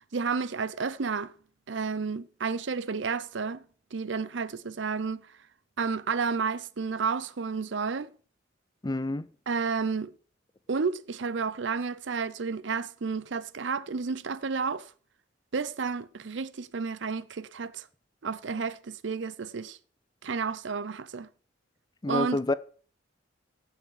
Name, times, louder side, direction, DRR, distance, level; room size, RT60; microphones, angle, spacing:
voice 1, 0.0-1.3 1.7-3.6 3.9-5.3 5.8-8.1 9.5-10.1 10.7-14.9 15.5-17.9 18.2-19.8 20.2-21.3 22.1-22.4, right 5 dB, 70° right, 0.6 m, -31 dB
voice 2, 8.8-9.3 22.0-22.5, left 2 dB, 20° left, 0.5 m, -28 dB
15.5 x 5.8 x 6.4 m
head